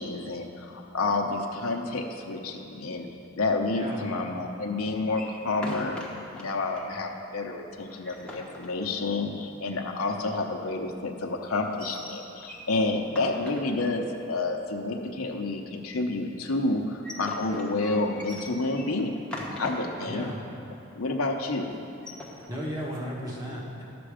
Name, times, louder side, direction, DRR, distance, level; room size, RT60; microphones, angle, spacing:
voice 1, 0.0-3.1 3.3-6.0 6.3-19.2 19.5-20.3 20.9-21.8, left 2 dB, 90° left, 2 dB, 0.8 m, -29 dB
sound 1, 5.1-6.5 6.8-6.9 7.2-7.3 7.8-9.3 11.6-12.7 13.1-14.1 16.7-20.1 20.5-20.6 20.9-21.3 21.9-23.1, left 1 dB, 5° left, 1.0 m, -41 dB
voice 2, 20.1-20.4 22.5-23.8, equal, 15° right, -5 dB, 1.5 m, -35 dB
11.0 x 6.9 x 5.0 m, 2.7 s
head